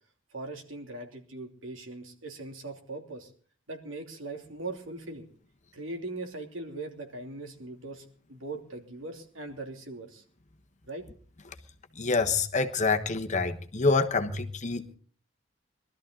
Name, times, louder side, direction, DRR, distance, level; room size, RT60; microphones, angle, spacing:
voice 1, 0.3-3.3 3.7-5.3 5.7-10.2 10.9-11.1, right 2 dB, 75° right, 4 dB, 2.9 m, -40 dB
voice 2, 12.0-15.0, left 4 dB, 35° left, 6 dB, 1.2 m, -27 dB
22.5 x 13.0 x 3.9 m, 0.44 s
head